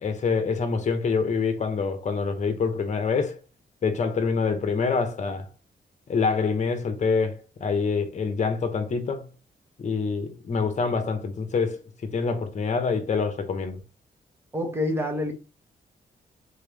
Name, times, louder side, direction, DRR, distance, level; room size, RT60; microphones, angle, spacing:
voice 1, 0.0-3.4 3.8-5.5 6.1-9.3 9.8-13.8, left 5 dB, 45° left, 1.1 m, -26 dB
voice 2, 14.5-15.3, left 1 dB, 15° right, 1.2 m, -27 dB
4.2 x 3.4 x 3.5 m
wide cardioid pair, 140°, 17 cm